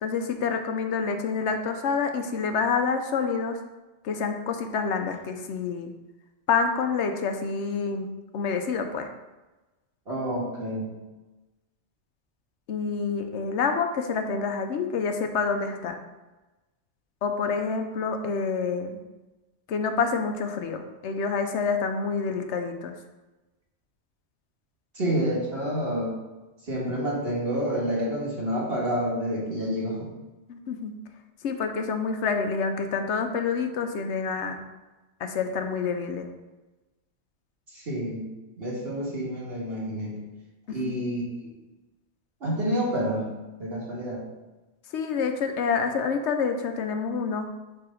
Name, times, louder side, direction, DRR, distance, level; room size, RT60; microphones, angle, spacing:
voice 1, 0.0-3.6 4.0-5.9 6.5-9.1 12.7-16.0 17.2-19.0 19.7-22.9 30.5-30.9 31.4-34.6 35.2-36.3 40.7-41.0 44.9-47.5, left 5 dB, 75° left, 6 dB, 1.0 m, -27 dB
voice 2, 10.1-10.9 25.0-26.1 26.6-30.1 37.7-38.3 38.6-40.2 40.7-41.2 42.4-43.3 43.6-44.2, equal, 55° right, -4 dB, 1.9 m, -28 dB
4.8 x 4.7 x 5.0 m, 1.1 s
omnidirectional pair, 1.2 m